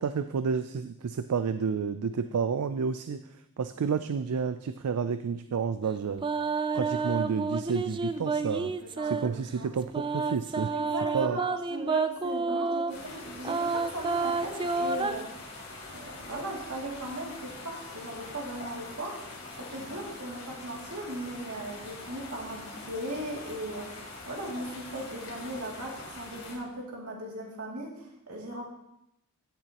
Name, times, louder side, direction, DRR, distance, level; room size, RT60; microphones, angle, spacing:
voice 1, 0.0-3.2 3.6-6.2 6.7-8.7 9.0-10.7 11.1-11.4, right 6 dB, 90° right, 10 dB, 0.4 m, -30 dB
sound 1, 6.2-9.3 9.9-13.0 13.4-15.1, right 4 dB, 20° right, 0.4 m, -29 dB
voice 2, 8.6-9.7 10.7-15.5 15.9-19.2 19.6-28.7, right 1 dB, 70° right, -2 dB, 2.6 m, -38 dB
sound 2, 12.9-26.6, left 2 dB, 70° left, 3.3 m, -44 dB
16.5 x 6.9 x 3.0 m, 0.84 s
head